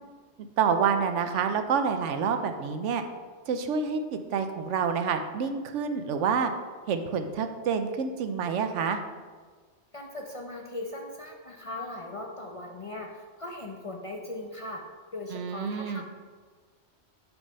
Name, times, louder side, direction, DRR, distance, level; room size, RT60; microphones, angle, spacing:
voice 1, 0.6-3.0 3.5-6.5 6.9-9.0 15.3-16.0, right 6 dB, 80° right, 8 dB, 1.0 m, -28 dB
voice 2, 9.9-13.1 13.4-14.8 15.1-16.0, left 2 dB, 35° left, 1 dB, 0.6 m, -38 dB
6.6 x 4.7 x 5.3 m, 1.5 s
omnidirectional pair, 1.2 m